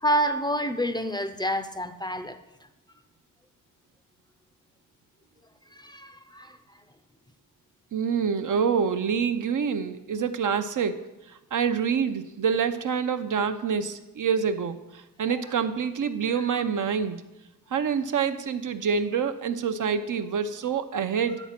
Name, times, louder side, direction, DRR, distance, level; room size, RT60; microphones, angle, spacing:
voice 1, 0.0-2.4 5.7-6.6 16.5-16.6, equal, 15° left, 8 dB, 0.5 m, -28 dB
voice 2, 7.9-11.0 11.5-17.2 17.7-21.4, right 6 dB, 65° right, 8 dB, 0.6 m, -26 dB
10.0 x 4.1 x 7.3 m, 0.99 s
wide cardioid pair, 90°, 34 cm